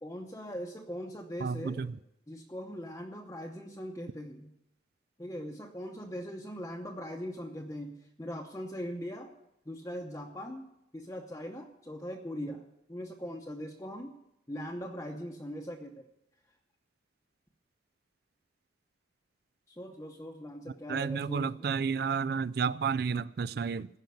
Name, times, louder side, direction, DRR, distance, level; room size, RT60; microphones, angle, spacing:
voice 1, 0.0-1.8 2.3-4.5 5.2-9.3 9.7-10.7 10.9-12.6 12.9-14.1 14.5-16.1 19.7-21.6, equal, 15° left, 0.8 m, -40 dB
voice 2, 1.4-1.9 20.9-23.9, right 5 dB, 55° right, 0.4 m, -31 dB
16.0 x 5.8 x 9.2 m
head